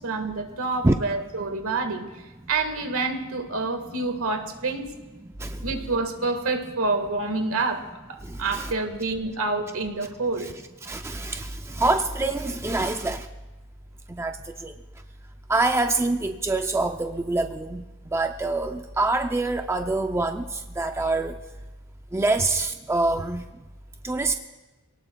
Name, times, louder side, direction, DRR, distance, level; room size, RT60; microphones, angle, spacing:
voice 1, 0.0-2.1 2.5-4.9 5.6-10.5, right 3 dB, 70° right, 6 dB, 1.6 m, -28 dB
voice 2, 8.3-8.7 10.8-13.3 14.2-14.4 14.6-14.7 15.5-17.8 18.1-21.4 22.1-23.4 24.0-24.3, right 2 dB, 10° right, 6 dB, 0.4 m, -25 dB
26.5 x 18.0 x 2.3 m, 1.2 s
head